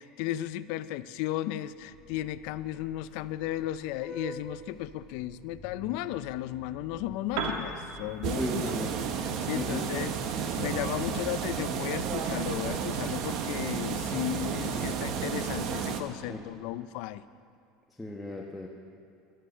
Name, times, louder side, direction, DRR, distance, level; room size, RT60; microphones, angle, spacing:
voice 1, 0.0-8.7 9.2-17.2, left 14 dB, 70° left, 15 dB, 0.5 m, -35 dB
Vehicle horn car horn honking, 1.7-17.0, equal, 15° right, 4.5 m, -50 dB
Piano, 7.2-15.0, right 4 dB, 75° right, 1.9 m, -43 dB
sound 1, 8.2-16.0, right 7 dB, 55° right, 1.2 m, -32 dB
voice 2, 8.4-9.0 9.5-9.9 14.7-14.9 16.3-16.4 18.0-18.7, left 1 dB, 10° left, -1 dB, 1.2 m, -35 dB
13.5 x 12.0 x 6.8 m, 2.4 s
supercardioid pair, 125°, 0 cm